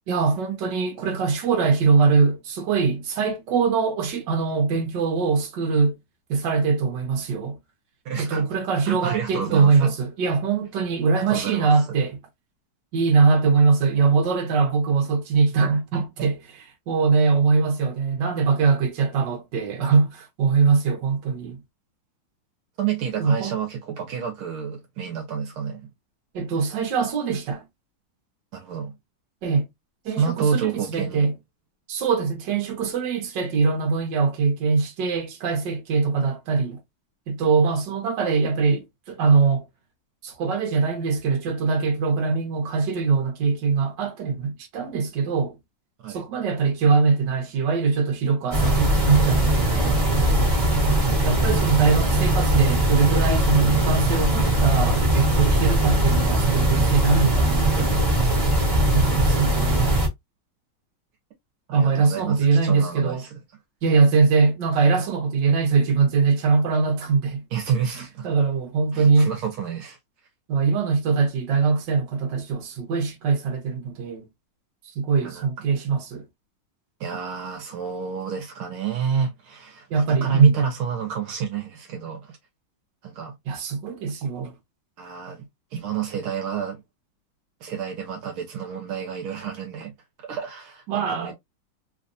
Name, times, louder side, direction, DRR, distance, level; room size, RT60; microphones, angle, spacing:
voice 1, 0.1-6.0 6.3-7.6 8.2-12.2 12.9-16.4 16.9-21.6 23.2-23.6 26.3-27.6 29.4-29.7 30.0-31.3 31.9-36.8 37.3-39.6 40.2-45.5 46.1-50.5 51.2-58.0 58.9-60.0 61.7-63.2 63.8-67.4 68.2-69.3 70.5-74.2 74.9-76.2 79.9-80.5 83.5-84.5 90.9-91.3, right 4 dB, 60° right, 1.6 m, -22 dB
voice 2, 8.0-8.6 8.9-9.9 11.3-11.7 22.8-25.9 28.5-28.9 30.2-31.3 46.0-46.2 61.7-63.4 67.5-68.3 68.9-70.0 75.2-75.5 77.0-82.4 83.0-83.3 85.0-86.8 87.6-89.9 90.2-91.3, right 7 dB, 75° right, 1.7 m, -29 dB
sound 1, 48.5-60.1, right 1 dB, 25° right, 1.3 m, -20 dB
3.9 x 2.5 x 2.5 m
omnidirectional pair, 2.3 m